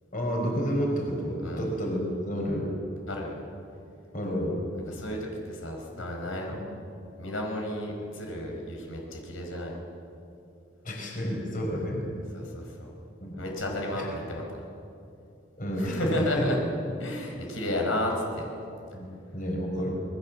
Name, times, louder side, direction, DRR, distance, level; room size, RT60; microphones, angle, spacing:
voice 1, 0.1-2.7 4.1-4.7 6.5-6.6 10.8-12.0 13.2-13.4 13.9-14.1 15.6-16.0 16.4-16.6 18.9-19.9, equal, 40° left, 0 dB, 5.2 m, -30 dB
voice 2, 3.1-3.4 4.9-5.2 5.5-6.6 7.2-9.8 11.8-11.9 12.3-12.9 13.4-14.7 15.8-16.6 17.0-18.5, left 1 dB, 80° left, 0 dB, 5.4 m, -32 dB
27.0 x 21.0 x 7.7 m, 2.6 s
head